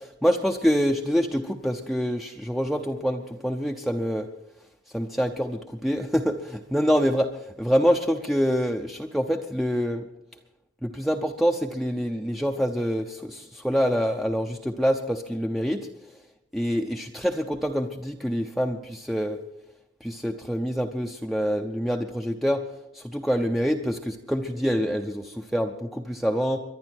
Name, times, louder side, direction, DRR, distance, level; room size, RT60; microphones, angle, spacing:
voice 1, 0.2-4.3 4.9-7.3 7.6-10.0 10.8-15.9 16.5-19.4 20.0-22.6 22.9-26.6, equal, ahead, 3 dB, 0.7 m, -26 dB
23.5 x 11.0 x 4.5 m, 0.87 s
head